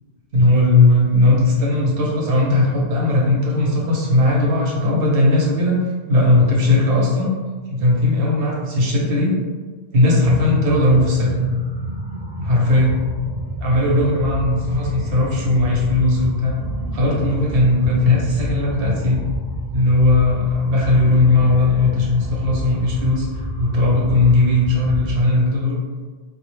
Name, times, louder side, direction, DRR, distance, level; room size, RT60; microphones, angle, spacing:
voice 1, 0.3-5.8 6.1-7.3 7.7-9.3 9.9-11.5 12.4-13.0 13.6-16.6 16.9-19.2 19.7-25.8, left 2 dB, 65° right, -3 dB, 0.8 m, -17 dB
sound 1, 10.2-25.2, right 1 dB, 40° right, 0.6 m, -29 dB
2.3 x 2.1 x 3.0 m, 1.4 s
omnidirectional pair, 1.1 m